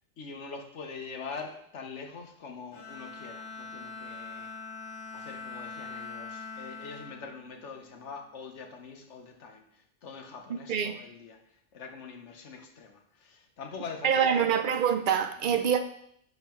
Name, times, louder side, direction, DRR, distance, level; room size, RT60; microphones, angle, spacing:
voice 1, 0.2-4.5 5.1-14.5 15.4-15.7, left 5 dB, 85° left, 4 dB, 1.3 m, -43 dB
Bowed string instrument, 2.7-8.2, left 4 dB, 60° left, 1.8 m, -43 dB
voice 2, 10.5-11.0 14.0-15.8, right 8 dB, 55° right, 9 dB, 0.7 m, -25 dB
9.7 x 5.5 x 3.0 m, 0.70 s
omnidirectional pair, 1.2 m